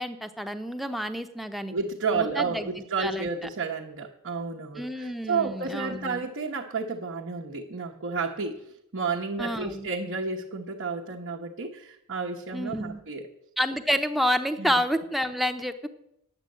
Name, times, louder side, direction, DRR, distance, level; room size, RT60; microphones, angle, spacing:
voice 1, 0.0-1.7 2.1-2.7 3.0-3.3 4.8-6.2 9.4-9.9 12.5-13.0 13.6-15.9, equal, ahead, 8 dB, 0.8 m, -29 dB
voice 2, 1.7-8.6 8.9-13.3 14.6-14.8, right 4 dB, 60° right, -2 dB, 1.1 m, -31 dB
10.0 x 8.4 x 7.8 m, 0.80 s
head